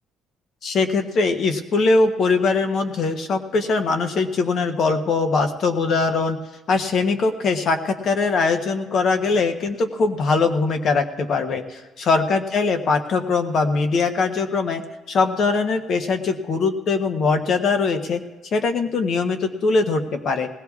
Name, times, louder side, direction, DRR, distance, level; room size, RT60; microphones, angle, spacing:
voice 1, 0.6-6.4 6.7-14.8 15.1-18.2 18.5-20.5, left 4 dB, 40° left, 8 dB, 0.8 m, -21 dB
20.0 x 17.0 x 2.4 m, 1.2 s
cardioid pair, 175°, 0 cm